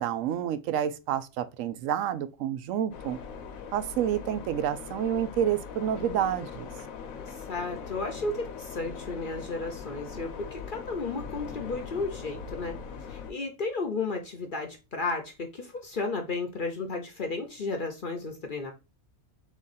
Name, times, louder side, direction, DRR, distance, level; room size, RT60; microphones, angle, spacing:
voice 1, 0.0-3.2 3.7-6.7, right 10 dB, 70° right, 0.9 m, -29 dB
sound 1, 2.9-13.3, left 6 dB, 75° left, 1.1 m, -41 dB
voice 2, 7.4-12.8 13.1-18.7, left 3 dB, 50° left, 0.7 m, -33 dB
3.7 x 3.1 x 3.9 m
omnidirectional pair, 1.5 m